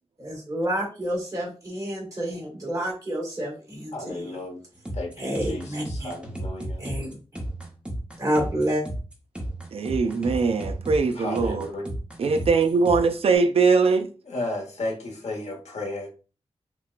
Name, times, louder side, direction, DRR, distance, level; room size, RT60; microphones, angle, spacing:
voice 1, 0.2-4.2 5.2-6.1 6.8-7.1 8.2-8.8, equal, 30° right, 1.9 m, -29 dB
voice 2, 3.9-4.6 4.9-6.8 11.1-11.9 14.2-16.1, left 2 dB, 85° left, 1.2 m, -34 dB
sound 1, 4.8-13.1, right 1 dB, 10° right, 0.9 m, -34 dB
voice 3, 9.7-11.7 12.2-14.1, right 4 dB, 60° right, 0.4 m, -21 dB
6.0 x 2.2 x 2.4 m
wide cardioid pair, 110°, 11 cm